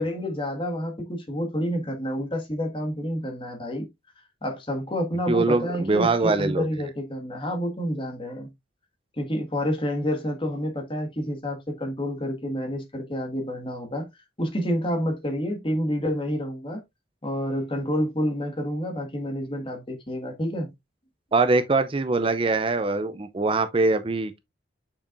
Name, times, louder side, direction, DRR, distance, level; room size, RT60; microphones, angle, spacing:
voice 1, 0.0-3.9 4.4-8.5 9.2-14.1 14.4-16.8 17.2-20.7, equal, 30° left, 1.7 m, -29 dB
voice 2, 5.3-6.7 21.3-24.4, right 3 dB, 30° right, 0.5 m, -23 dB
6.7 x 5.7 x 2.5 m
head